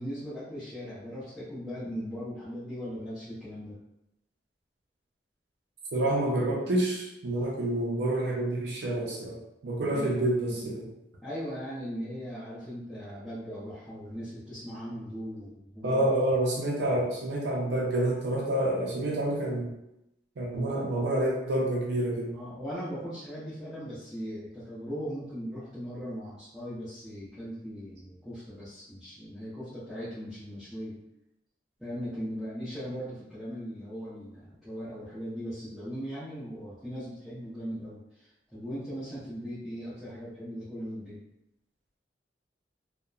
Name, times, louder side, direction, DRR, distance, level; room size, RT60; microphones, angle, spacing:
voice 1, 0.0-3.8 6.6-6.7 9.8-10.1 10.5-10.7 11.2-16.0 20.5-20.7 22.3-31.0 31.8-41.2, equal, ahead, -15 dB, 0.8 m, -39 dB
voice 2, 5.9-9.4 9.6-10.9 15.8-19.7 20.4-22.3, right 1 dB, 70° right, -3 dB, 0.5 m, -28 dB
2.8 x 2.1 x 2.3 m, 0.87 s
head